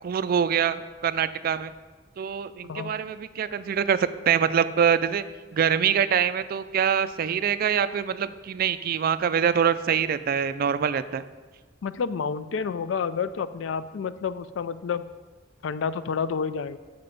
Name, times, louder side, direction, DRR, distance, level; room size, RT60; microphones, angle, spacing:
voice 1, 0.0-1.7 2.2-5.2 5.5-11.2, right 7 dB, 50° right, 13 dB, 0.3 m, -24 dB
voice 2, 11.8-15.1 15.6-16.8, left 6 dB, 85° left, 14 dB, 0.4 m, -29 dB
7.5 x 6.0 x 5.1 m, 1.3 s
head